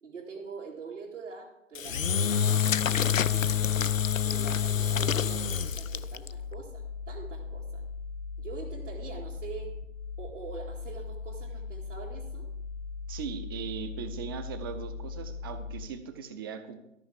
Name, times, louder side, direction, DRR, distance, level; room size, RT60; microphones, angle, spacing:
voice 1, 0.0-4.0 4.2-7.8 8.4-9.7 10.2-12.5, right 5 dB, 65° right, -5 dB, 2.5 m, -44 dB
Engine / Drill, 1.7-6.3, left 8 dB, 85° left, 0.6 m, -27 dB
sound 1, 2.9-15.9, left 4 dB, 25° left, 0.5 m, -39 dB
voice 2, 13.1-16.8, right 7 dB, 20° right, 10 dB, 0.6 m, -39 dB
13.5 x 5.6 x 7.5 m, 0.84 s
figure-of-eight pair, 130°, 39 cm